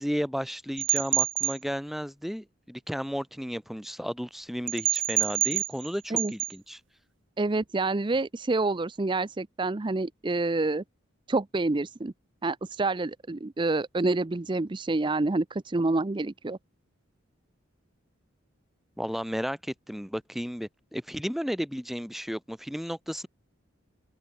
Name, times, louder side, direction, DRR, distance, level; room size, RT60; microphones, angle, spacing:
voice 1, 0.0-6.8 19.0-23.3, equal, ahead, 1.5 m, -33 dB
sound 1, 0.8-1.6 4.7-5.9 6.2-6.5, right 13 dB, 65° right, 1.7 m, -26 dB
voice 2, 7.4-10.8 11.3-12.1 12.4-16.6, right 2 dB, 25° right, 0.5 m, -28 dB
open air
head